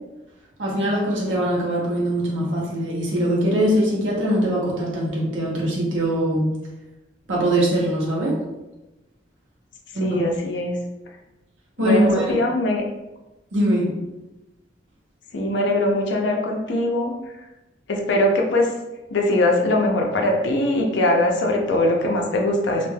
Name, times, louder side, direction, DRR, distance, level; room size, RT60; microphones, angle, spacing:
voice 1, 0.6-6.4 7.3-8.4 9.9-10.2 11.8-12.3 13.5-13.9, right 1 dB, 85° right, -4 dB, 0.9 m, -22 dB
voice 2, 10.0-10.8 11.8-12.8 15.3-17.2 17.9-18.7 19.1-22.9, left 1 dB, 65° left, 1 dB, 0.5 m, -21 dB
2.4 x 2.2 x 3.2 m, 1.0 s
head